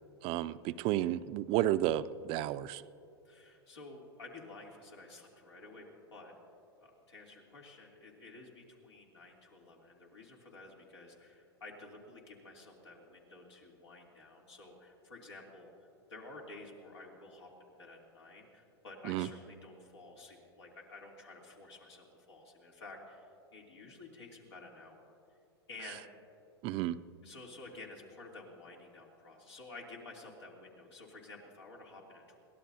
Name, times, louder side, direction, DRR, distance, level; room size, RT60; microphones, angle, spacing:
voice 1, 0.2-2.8 19.1-19.3 26.6-27.0, right 13 dB, 40° right, 14 dB, 0.4 m, -32 dB
voice 2, 3.2-6.3 6.8-15.7 16.1-25.2 25.7-26.1 27.2-32.4, left 2 dB, 85° left, -2 dB, 3.1 m, -52 dB
22.5 x 17.0 x 2.8 m, 2.6 s
hypercardioid pair, 110°, 14 cm